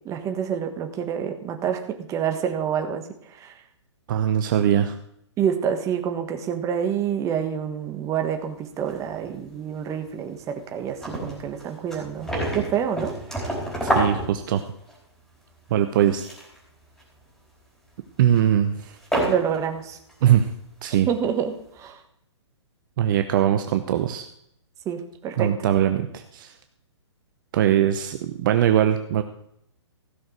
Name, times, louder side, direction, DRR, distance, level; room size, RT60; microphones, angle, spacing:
voice 1, 0.0-3.0 3.4-3.5 5.4-13.2 19.2-20.0 21.1-22.0 24.8-25.7, right 8 dB, 20° right, 6 dB, 1.5 m, -27 dB
voice 2, 4.1-5.0 13.8-14.6 15.7-16.2 18.2-19.0 20.2-20.5 20.8-21.1 23.0-24.3 25.4-26.5 27.5-29.2, right 10 dB, 45° right, 8 dB, 0.9 m, -21 dB
sound 1, 8.9-9.6 9.9-10.0 10.4-10.5 10.7-14.9 15.9-16.6 17.0-17.2 18.3-18.4 19.0-19.6 20.1-20.2, right 1 dB, 5° left, 4.3 m, -28 dB
16.0 x 6.5 x 6.4 m, 0.73 s
hypercardioid pair, 135°, 15 cm